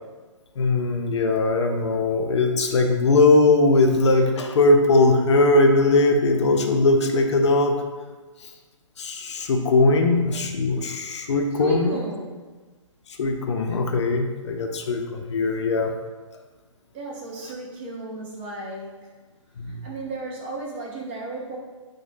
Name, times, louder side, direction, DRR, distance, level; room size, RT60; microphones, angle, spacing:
voice 1, 0.6-7.8 9.0-12.0 13.2-15.9 19.6-19.8, left 2 dB, 60° left, 4 dB, 0.4 m, -20 dB
voice 2, 11.5-12.5 16.9-19.1 19.6-21.6, right 2 dB, 20° right, -2 dB, 0.3 m, -34 dB
2.6 x 2.1 x 3.3 m, 1.3 s
hypercardioid pair, 145°, 17 cm